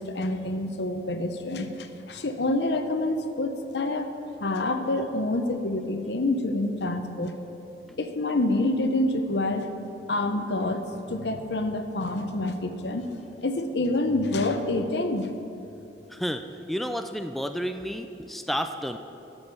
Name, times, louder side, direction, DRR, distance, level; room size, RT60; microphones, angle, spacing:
voice 1, 0.0-4.1 4.4-7.4 8.0-9.7 10.1-13.1 13.4-15.3, left 2 dB, 75° left, 7 dB, 0.8 m, -27 dB
voice 2, 16.1-19.0, equal, ahead, 7 dB, 0.3 m, -31 dB
11.5 x 6.3 x 6.9 m, 2.9 s
head